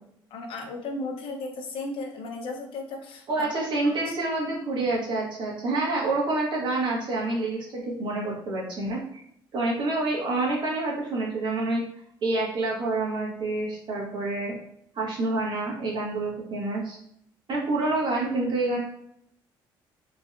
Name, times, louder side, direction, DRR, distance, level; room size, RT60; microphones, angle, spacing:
voice 1, 0.3-3.5 3.8-4.1, left 2 dB, 75° left, 3 dB, 0.8 m, -35 dB
voice 2, 3.3-9.2 9.5-11.8 12.2-14.5 14.9-17.0 17.5-18.8, right 2 dB, 55° right, -3 dB, 1.5 m, -27 dB
3.8 x 3.1 x 2.5 m, 0.71 s
cardioid pair, 90°, 9 cm